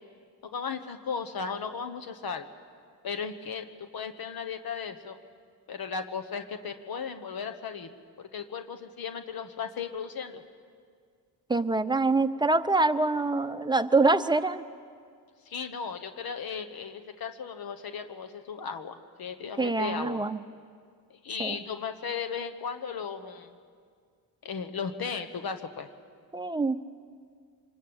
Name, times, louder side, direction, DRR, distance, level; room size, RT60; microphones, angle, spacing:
voice 1, 0.5-2.5 3.0-5.2 5.7-10.4 15.4-20.2 21.1-23.5 24.4-25.9, left 6 dB, 65° left, 9 dB, 1.3 m, -36 dB
voice 2, 11.5-14.6 19.6-20.4 21.4-21.6 26.3-26.8, right 3 dB, 10° right, 10 dB, 0.7 m, -25 dB
25.5 x 20.5 x 8.9 m, 2.1 s
cardioid pair, 115°, 38 cm